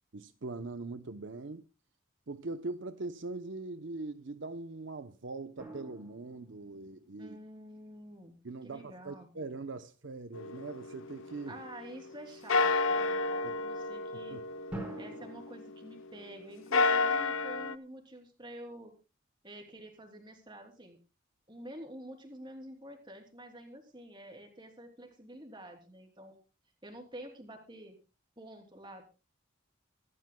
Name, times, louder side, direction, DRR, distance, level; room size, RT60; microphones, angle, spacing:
voice 1, 0.1-1.6 2.3-7.4 8.4-11.6 13.4-13.5 14.3-14.4, right 3 dB, 70° right, 0.8 m, -41 dB
sound 1, 5.6-7.7 14.7-15.4, right 1 dB, 10° right, 5.0 m, -45 dB
voice 2, 7.2-8.4 8.6-9.3 11.5-14.4 15.0-18.9 19.4-21.0 21.5-26.4 26.8-28.0 28.4-29.1, right 1 dB, 25° right, 3.2 m, -48 dB
sound 2, 10.3-12.1 12.5-16.0 16.5-17.7, left 3 dB, 85° left, 0.7 m, -31 dB
24.5 x 12.5 x 2.2 m
head